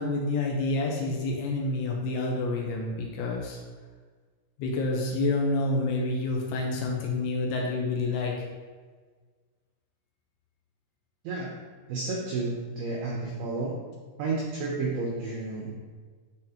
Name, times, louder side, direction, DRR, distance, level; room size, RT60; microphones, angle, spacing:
voice 1, 0.0-3.6 4.6-8.3, left 2 dB, 80° left, -1 dB, 3.0 m, -28 dB
voice 2, 11.9-13.7 14.2-15.7, right 3 dB, 90° right, -2 dB, 2.1 m, -31 dB
10.0 x 4.1 x 2.8 m, 1.5 s
omnidirectional pair, 5.6 m